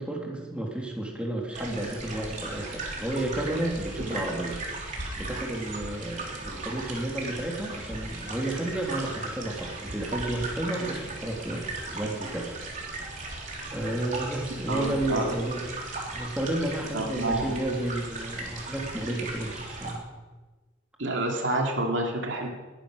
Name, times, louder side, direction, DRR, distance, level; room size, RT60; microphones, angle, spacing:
voice 1, 0.0-4.6 5.2-12.5 13.7-15.6 16.1-20.0, right 1 dB, 5° right, -1 dB, 2.9 m, -32 dB
sound 1, 1.5-19.9, right 2 dB, 40° right, 3.5 m, -37 dB
voice 2, 14.7-15.3 16.9-17.5 21.0-22.5, right 2 dB, 70° right, 1 dB, 2.6 m, -29 dB
20.5 x 10.0 x 6.4 m, 1.3 s
head